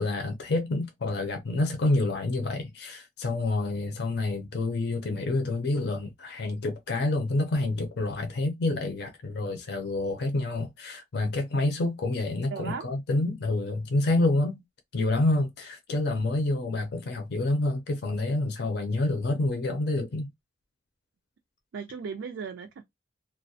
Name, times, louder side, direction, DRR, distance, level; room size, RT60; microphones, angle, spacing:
voice 1, 0.0-14.6 14.9-20.3, left 2 dB, 60° left, 0.5 m, -28 dB
voice 2, 12.5-12.9 21.7-22.8, right 6 dB, 85° right, 0.4 m, -36 dB
2.3 x 2.0 x 2.6 m
head